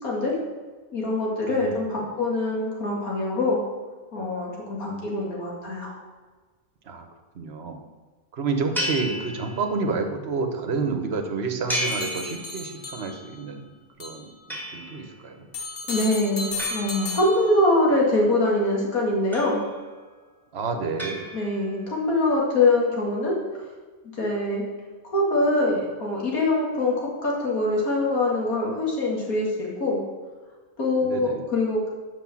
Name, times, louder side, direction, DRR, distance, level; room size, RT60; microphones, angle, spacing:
voice 1, 0.0-0.4 0.9-3.6 4.1-6.0 15.9-19.6 21.3-23.4 24.2-24.6 25.1-30.0 30.8-31.9, left 2 dB, 90° left, -2 dB, 2.6 m, -24 dB
voice 2, 1.5-2.2 4.9-5.1 6.8-7.1 7.3-7.8 8.3-15.5 20.5-21.3 31.0-31.4, right 4 dB, 50° right, 5 dB, 1.2 m, -30 dB
sound 1, 8.7-10.0 11.7-13.0 14.5-15.2 16.6-17.7 19.3-20.0 21.0-21.9, equal, ahead, 1.8 m, -33 dB
sound 2, 11.7-13.4 14.0-14.3 15.5-17.8, left 3 dB, 45° left, 1.2 m, -34 dB
8.2 x 5.4 x 7.2 m, 1.4 s
omnidirectional pair, 1.5 m